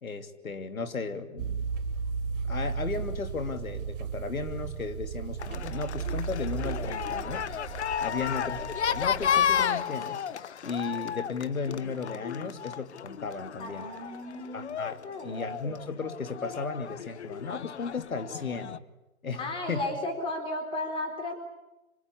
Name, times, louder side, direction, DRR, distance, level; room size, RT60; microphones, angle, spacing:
voice 1, 0.0-1.8 2.5-7.4 8.0-8.6 8.9-10.2 10.6-13.9 14.5-18.7 19.2-19.8, left 4 dB, 80° left, 7 dB, 3.0 m, -35 dB
sound 1, 1.4-9.6, right 6 dB, 35° right, 5.9 m, -35 dB
sound 2, 5.4-18.8, left 8 dB, 50° left, 1.0 m, -33 dB
voice 2, 13.6-14.7 15.0-15.5 19.3-21.3, left 2 dB, 10° left, 4 dB, 4.3 m, -35 dB
26.5 x 25.5 x 8.5 m, 1.0 s
hypercardioid pair, 145°, 42 cm